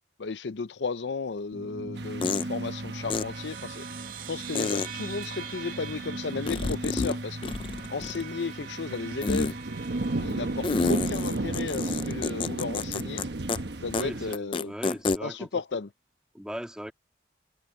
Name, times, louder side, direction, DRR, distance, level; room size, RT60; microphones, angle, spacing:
voice 1, 0.2-3.8 4.3-7.5 7.9-9.6 10.2-13.2 13.8-14.7 15.2-15.9, left 4 dB, 85° left, 0.6 m, -34 dB
sound 1, 1.3-1.4 2.2-2.5 3.1-3.2 4.6-4.9 6.5-7.2 7.4-8.3 9.2-9.5 10.6-13.2 13.5-13.6 13.9-14.0 14.3-15.2, left 4 dB, 30° left, 0.3 m, -29 dB
sound 2, 1.5-12.3, right 2 dB, 50° right, 2.1 m, -39 dB
sound 3, 2.0-14.4, right 2 dB, 75° right, 1.1 m, -35 dB
voice 2, 13.9-15.6 16.3-16.9, equal, 5° right, 2.4 m, -38 dB
head